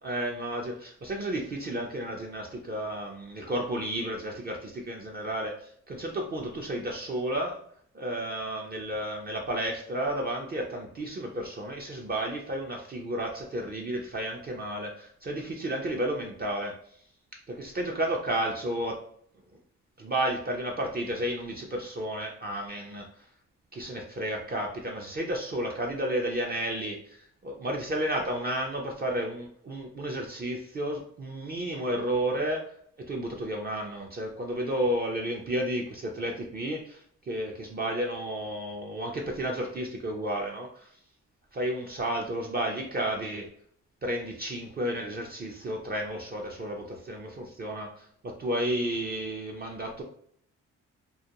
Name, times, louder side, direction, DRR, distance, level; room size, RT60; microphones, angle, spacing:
voice 1, 0.0-7.6 7.9-17.0 17.5-19.0 20.0-23.3 23.7-41.0 41.5-43.5 44.0-50.0, right 1 dB, 30° right, 0 dB, 0.4 m, -32 dB
2.3 x 2.1 x 2.8 m, 0.63 s
cardioid pair, 80°, 33 cm